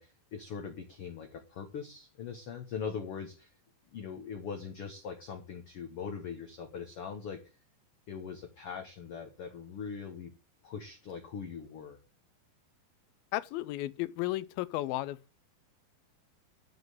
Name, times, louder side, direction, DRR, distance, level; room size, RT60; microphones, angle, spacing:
voice 1, 0.0-3.5 3.9-7.4 8.1-10.3 10.6-12.0, left 6 dB, 60° left, 1.5 m, -41 dB
voice 2, 13.3-15.2, left 16 dB, 85° left, 2.5 m, -33 dB
12.0 x 5.3 x 7.9 m
omnidirectional pair, 4.2 m